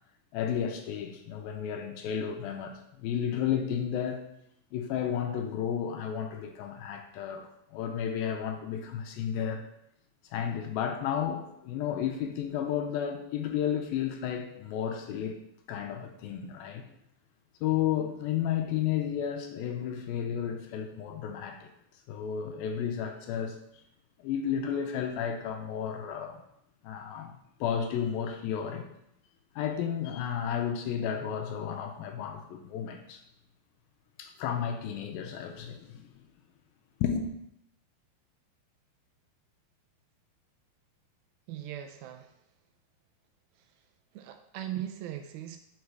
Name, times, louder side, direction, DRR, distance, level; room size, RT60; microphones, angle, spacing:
voice 1, 0.3-4.2 4.7-9.6 10.3-15.4 15.7-16.9 17.6-21.7 22.1-23.6 24.2-26.4 26.8-27.3 27.6-28.9 29.6-33.2 34.2-36.0 37.0-37.3, left 8 dB, 80° left, 4 dB, 2.3 m, -32 dB
voice 2, 41.5-42.3 43.6-43.7 44.1-45.6, right 11 dB, 80° right, 7 dB, 2.3 m, -39 dB
6.4 x 4.8 x 4.6 m, 0.77 s
omnidirectional pair, 4.4 m